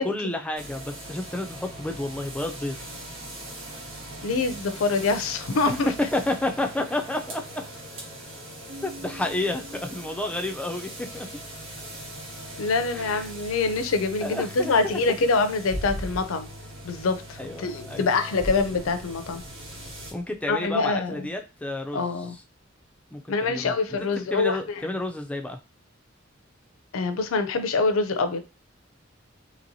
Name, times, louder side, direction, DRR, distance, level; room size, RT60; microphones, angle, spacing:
voice 1, 0.0-2.8 5.7-5.8 6.1-7.4 8.8-11.3 13.0-13.2 14.2-15.0 17.4-18.1 20.1-22.1 23.1-25.6, left 2 dB, 5° left, 4 dB, 0.4 m, -31 dB
sound 1, 0.6-20.1, equal, 80° right, 1.2 m, -40 dB
voice 2, 4.2-5.9 12.6-16.5 16.8-19.4 20.5-21.1 21.9-22.4 23.3-24.8 26.9-28.4, left 3 dB, 80° left, 8 dB, 0.5 m, -25 dB
Keyboard (musical), 8.7-11.3, right 1 dB, 60° right, 0.4 m, -46 dB
sound 2, 18.4-21.4, equal, 30° right, 1.0 m, -41 dB
3.0 x 2.9 x 2.6 m, 0.30 s
head